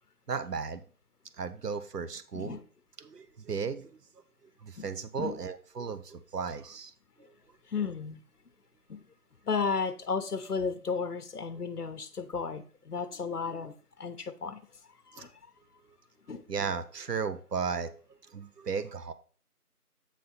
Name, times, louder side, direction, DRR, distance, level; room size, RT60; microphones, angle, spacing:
voice 1, 0.3-0.8 1.4-2.6 3.0-3.9 4.6-6.9 15.2-15.3 16.5-18.0 18.3-19.1, right 5 dB, 85° right, 0.8 m, -35 dB
voice 2, 7.7-8.2 8.9-9.0 9.5-14.6 15.1-15.3 16.3-16.4, left 5 dB, 75° left, 0.9 m, -33 dB
8.2 x 4.1 x 4.1 m
figure-of-eight pair, 180°, 46 cm